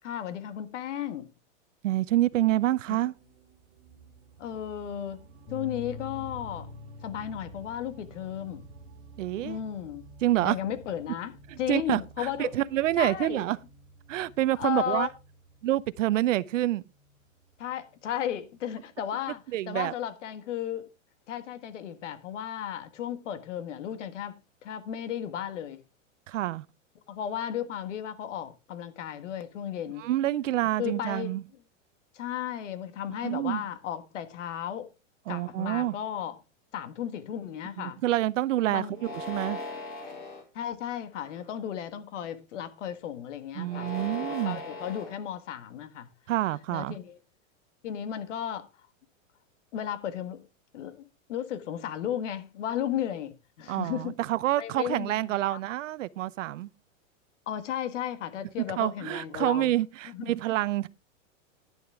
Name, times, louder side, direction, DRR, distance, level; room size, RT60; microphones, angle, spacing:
voice 1, 0.0-1.3 4.4-6.7 7.0-8.6 9.4-10.1 10.4-12.5 13.0-13.5 14.5-15.1 17.6-20.9 21.3-25.8 27.1-30.1 30.8-31.4 32.1-34.9 35.3-36.4 36.7-38.0 38.7-39.0 40.5-46.1 46.7-47.2 47.8-48.7 49.7-50.5 50.7-54.2 54.6-55.2 55.5-55.6 57.5-59.7 60.1-60.4, left 10 dB, 65° left, 1.7 m, -34 dB
voice 2, 1.8-3.1 9.2-9.6 10.2-10.6 11.7-13.6 14.1-15.1 15.6-16.8 19.5-19.9 26.3-26.6 30.0-31.4 33.2-33.6 35.3-36.0 37.8-38.9 39.3-39.6 43.6-44.6 46.3-47.0 53.7-56.7 58.8-60.9, right 14 dB, 70° right, 0.8 m, -27 dB
sound 1, 3.1-19.5, right 3 dB, 35° right, 3.0 m, -53 dB
sound 2, 5.5-11.7, left 4 dB, 40° left, 6.0 m, -47 dB
sound 3, 38.9-40.4 41.1-41.7 43.6-45.1, left 1 dB, 25° left, 2.9 m, -38 dB
11.0 x 10.5 x 3.5 m
supercardioid pair, 165°, 39 cm